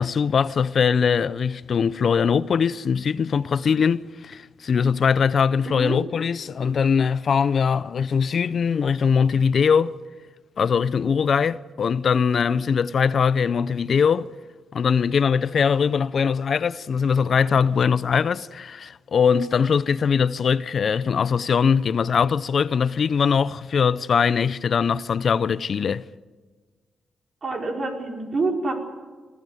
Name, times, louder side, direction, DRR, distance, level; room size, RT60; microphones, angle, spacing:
voice 1, 0.0-9.9 10.6-14.3 14.7-26.0, left 6 dB, 55° left, 0.6 m, -21 dB
voice 2, 5.7-6.0 27.4-28.7, right 3 dB, 40° right, 4.7 m, -27 dB
22.0 x 15.0 x 9.4 m
cardioid pair, 100°, 0 cm